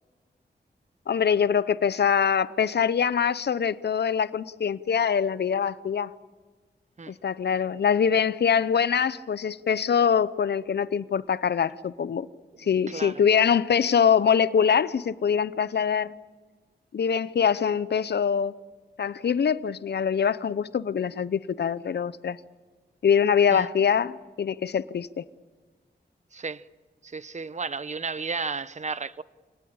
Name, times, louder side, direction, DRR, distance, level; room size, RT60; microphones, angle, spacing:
voice 1, 1.1-6.1 7.1-12.3 12.6-16.1 16.9-18.5 19.0-22.4 23.0-25.2, left 7 dB, 65° left, 0.7 m, -24 dB
voice 2, 12.9-13.2 23.5-23.7 26.3-26.6 27.0-29.2, right 4 dB, 40° right, 0.8 m, -33 dB
27.0 x 19.0 x 8.8 m
wide cardioid pair, 75°, 18 cm